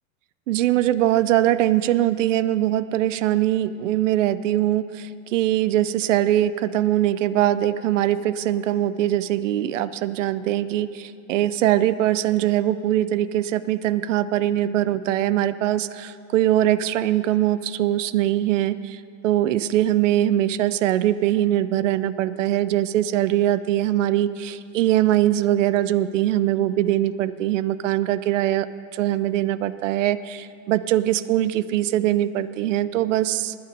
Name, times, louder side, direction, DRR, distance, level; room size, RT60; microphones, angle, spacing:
voice 1, 0.5-28.7 28.9-33.5, right 13 dB, 60° right, 15 dB, 0.5 m, -22 dB
20.0 x 6.7 x 5.2 m, 2.6 s
supercardioid pair, 165°, 43 cm